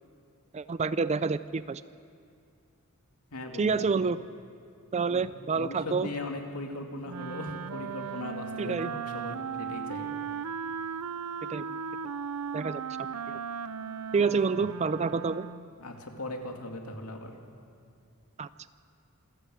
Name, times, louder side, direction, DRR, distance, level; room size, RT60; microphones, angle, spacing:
voice 1, 0.5-1.8 3.6-4.2 4.9-6.1 8.6-8.9 11.4-11.8 12.5-13.4 14.1-15.5 18.4-18.5, right 5 dB, 30° right, 14 dB, 0.4 m, -28 dB
voice 2, 3.3-4.1 5.1-5.2 5.5-10.1 14.6-14.7 15.8-17.3, left 2 dB, 80° left, 3 dB, 2.6 m, -39 dB
Wind instrument woodwind instrument, 7.0-15.7, right 6 dB, 90° right, 0.6 m, -37 dB
27.0 x 14.0 x 8.0 m, 2.4 s
head